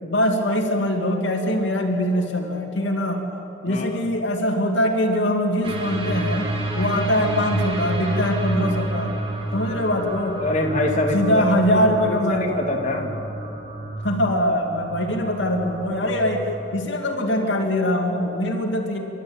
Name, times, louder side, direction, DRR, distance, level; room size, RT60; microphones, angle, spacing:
voice 1, 0.0-3.3 3.6-9.1 9.5-10.4 11.1-12.6 14.0-19.0, equal, 60° left, 2 dB, 2.7 m, -22 dB
voice 2, 3.7-4.0 10.4-11.6 12.1-13.1, left 2 dB, 35° left, 2 dB, 2.4 m, -25 dB
sound 1, 5.6-16.7, right 2 dB, 25° right, 2.6 m, -29 dB
29.5 x 13.0 x 8.9 m, 3.0 s
head